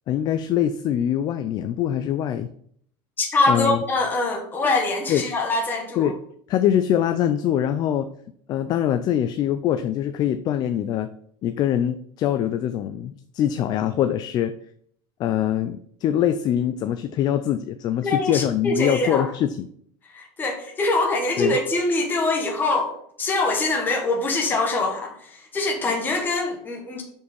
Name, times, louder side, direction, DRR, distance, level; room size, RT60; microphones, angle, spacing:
voice 1, 0.1-2.5 3.5-3.8 5.1-5.3 6.0-6.2 6.5-8.1 8.5-11.1 11.4-14.5 15.2-19.7 21.4-21.6, left 10 dB, 35° left, 10 dB, 0.4 m, -23 dB
voice 2, 3.2-6.1 18.0-19.3 20.1-22.9 23.2-27.0, left 2 dB, 15° left, 0 dB, 1.3 m, -24 dB
6.4 x 5.2 x 5.3 m, 0.64 s
cardioid pair, 160°, 13 cm